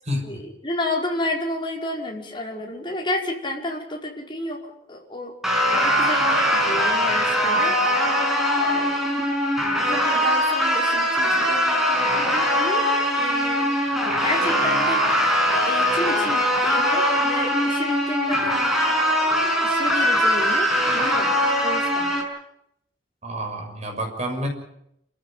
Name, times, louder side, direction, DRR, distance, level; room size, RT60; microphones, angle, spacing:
voice 1, 0.2-5.3 5.7-9.0 9.8-12.9 13.1-13.6 14.2-15.0 15.5-18.6 19.2-22.1, left 1 dB, 25° left, -1 dB, 5.0 m, -31 dB
sound 1, 5.4-22.2, equal, ahead, 5.8 m, -21 dB
voice 2, 23.2-24.5, equal, 40° right, 3 dB, 6.5 m, -28 dB
27.5 x 15.0 x 9.0 m, 0.77 s
head